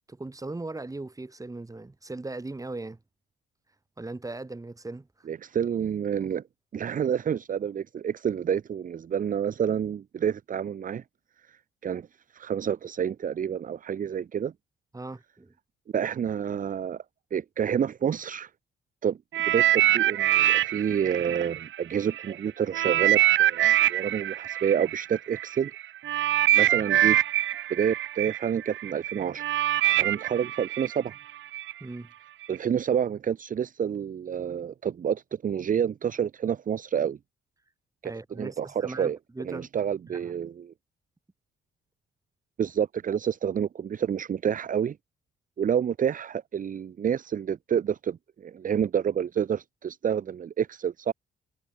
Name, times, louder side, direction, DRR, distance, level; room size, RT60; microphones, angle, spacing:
voice 1, 0.1-3.0 4.0-5.3 14.9-15.5 31.8-32.1 38.0-39.7 40.1-40.3, right 2 dB, 15° right, 4.6 m, -38 dB
voice 2, 5.3-6.4 6.7-11.0 11.5-12.1 12.3-14.5 15.9-17.0 17.3-18.5 19.0-25.7 26.5-27.2 27.7-29.5 30.0-31.1 32.5-37.2 38.0-38.1 38.4-39.2 39.4-40.7 42.6-45.0 45.6-51.1, right 8 dB, 45° right, 0.8 m, -28 dB
sound 1, 19.3-22.3 22.7-31.7 32.4-32.6, right 13 dB, 75° right, 1.3 m, -24 dB
cardioid pair, 90°, 20 cm